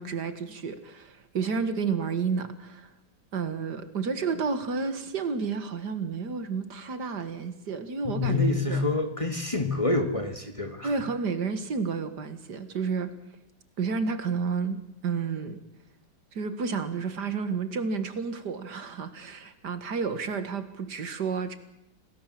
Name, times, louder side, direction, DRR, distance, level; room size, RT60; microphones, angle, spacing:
voice 1, 0.0-2.9 3.3-8.8 10.8-13.1 13.8-15.6 16.3-21.6, right 5 dB, 70° right, 11 dB, 2.3 m, -31 dB
voice 2, 8.0-10.9, left 3 dB, 20° left, 7 dB, 2.0 m, -27 dB
28.0 x 18.5 x 7.6 m, 0.86 s
omnidirectional pair, 1.9 m